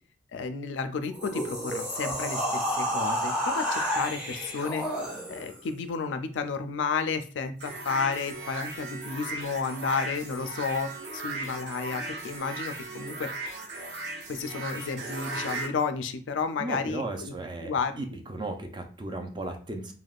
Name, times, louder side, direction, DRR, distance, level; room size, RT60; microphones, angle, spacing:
voice 1, 0.3-4.9 5.3-13.3 14.3-17.3 17.6-18.0, left 5 dB, 75° left, 9 dB, 0.4 m, -32 dB
sound 1, 1.0-5.6, equal, 5° right, 1.0 m, -30 dB
sound 2, 7.6-15.7, right 2 dB, 60° right, 0.8 m, -37 dB
voice 2, 16.6-19.9, right 2 dB, 25° right, 4 dB, 0.4 m, -36 dB
3.4 x 2.1 x 2.3 m, 0.41 s
head